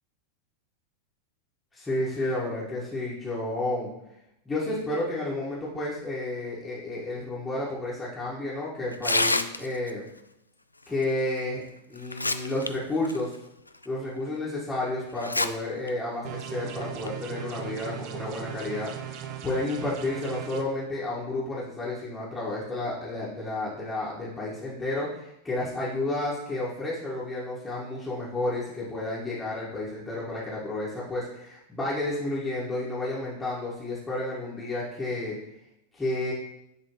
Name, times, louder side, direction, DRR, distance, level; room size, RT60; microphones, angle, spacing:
voice 1, 1.7-3.9 4.4-10.0 10.9-11.6 11.9-13.3 13.8-35.4 35.9-36.3, left 2 dB, 10° left, -9 dB, 1.7 m, -31 dB
Tearing, 8.9-9.9 11.4-11.5 12.0-12.7 13.0-13.2 13.8-13.9 15.2-15.5 15.9-16.0 16.8-17.1, left 2 dB, 85° left, 0.3 m, -26 dB
sound 1, 16.2-20.6, right 9 dB, 45° right, 0.6 m, -38 dB
10.5 x 3.6 x 3.1 m, 0.83 s
figure-of-eight pair, 90°, 0 cm